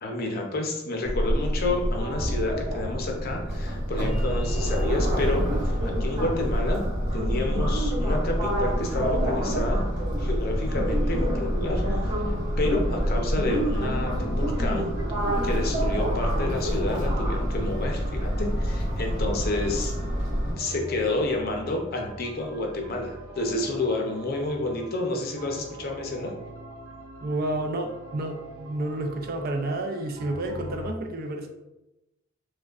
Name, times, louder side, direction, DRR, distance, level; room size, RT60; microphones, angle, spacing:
voice 1, 0.0-6.8 7.1-9.8 10.2-14.9 15.4-19.9 20.6-26.3, left 2 dB, 50° left, 2 dB, 0.6 m, -30 dB
sound 1, 1.0-20.5, equal, 30° right, 1.2 m, -26 dB
sound 2, 11.6-30.9, right 1 dB, 90° right, 1.0 m, -43 dB
voice 2, 27.2-31.5, right 2 dB, 50° right, 3 dB, 0.4 m, -30 dB
4.8 x 2.2 x 2.4 m, 0.96 s
head